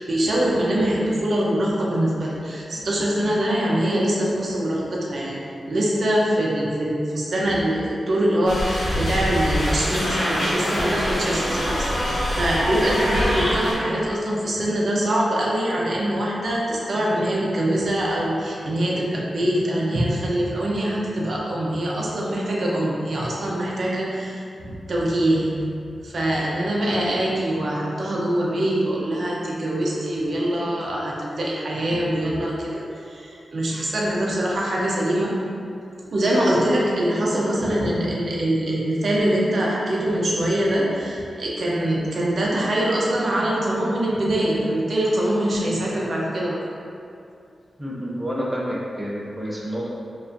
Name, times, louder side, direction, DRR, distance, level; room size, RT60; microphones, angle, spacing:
voice 1, 0.0-25.6 26.0-32.8 33.1-35.3 36.1-46.6, right 1 dB, 55° right, -4 dB, 0.7 m, -23 dB
sound 1, 8.5-13.7, equal, 70° left, 1.0 m, -24 dB
voice 2, 47.8-49.9, equal, 10° right, -4 dB, 0.6 m, -29 dB
4.7 x 2.6 x 2.6 m, 2.5 s
wide cardioid pair, 120°, 0 cm